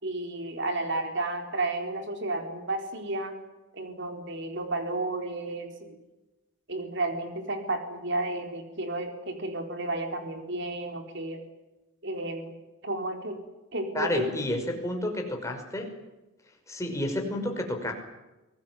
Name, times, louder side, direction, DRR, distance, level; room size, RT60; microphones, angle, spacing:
voice 1, 0.0-3.3 3.7-6.0 6.7-11.4 12.0-12.5 12.8-13.4 13.7-14.3, right 2 dB, 55° right, 5 dB, 4.3 m, -32 dB
voice 2, 13.9-15.9 16.7-17.9, left 1 dB, 15° left, 2 dB, 5.5 m, -30 dB
25.0 x 20.0 x 9.7 m, 1.0 s
head